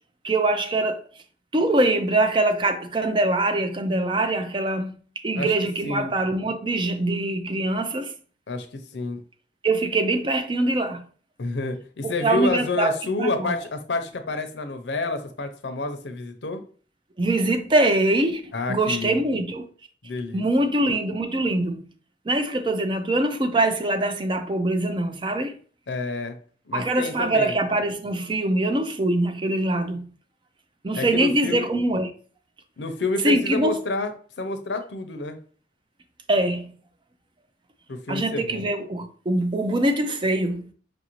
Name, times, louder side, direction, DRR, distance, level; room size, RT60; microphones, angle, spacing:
voice 1, 0.2-1.0 1.5-4.9 5.2-8.1 9.6-11.0 12.0-13.5 17.2-18.4 18.7-19.7 20.3-21.8 22.3-25.5 26.7-30.1 30.8-32.1 33.2-33.7 36.3-36.7 38.1-40.6, right 2 dB, 25° right, 0.4 m, -23 dB
voice 2, 8.5-9.2 11.4-16.6 18.5-19.2 20.0-20.4 25.9-26.3 26.7-27.6 30.9-31.7 32.8-34.1 34.4-35.4 37.9-38.6, left 3 dB, 80° left, 0.6 m, -29 dB
4.8 x 2.5 x 3.0 m
head